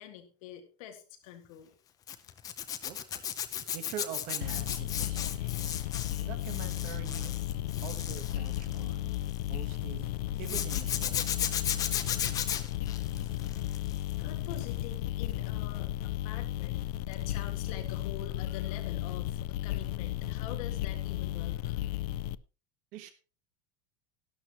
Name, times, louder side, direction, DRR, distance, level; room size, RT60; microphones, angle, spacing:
voice 1, 0.0-1.7 14.2-22.1, left 10 dB, 60° left, 5 dB, 2.1 m, -46 dB
Zipper (clothing), 2.1-9.5 10.4-14.1 14.4-14.8 17.1-17.3 17.5-17.6, left 9 dB, 15° left, 0.6 m, -35 dB
voice 2, 2.8-3.2 3.7-7.3 7.8-10.1 10.4-11.8 22.9-23.1, right 10 dB, 40° right, 8 dB, 1.3 m, -45 dB
sound 1, 4.4-22.3, left 15 dB, 75° left, 0.5 m, -34 dB
sound 2, 9.3-14.9, left 5 dB, 40° left, 6.7 m, -58 dB
12.5 x 12.0 x 3.0 m, 0.34 s
supercardioid pair, 180°, 21 cm